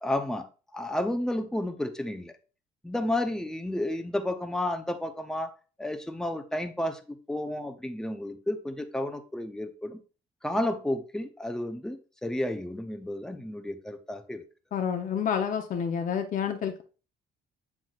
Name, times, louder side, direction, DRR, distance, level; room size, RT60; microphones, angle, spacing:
voice 1, 0.0-2.3 2.8-10.0 10.4-14.4, left 1 dB, 5° left, 0.8 m, -32 dB
voice 2, 14.7-16.8, left 7 dB, 50° left, 0.9 m, -29 dB
7.7 x 6.0 x 2.5 m
cardioid pair, 110°, 17 cm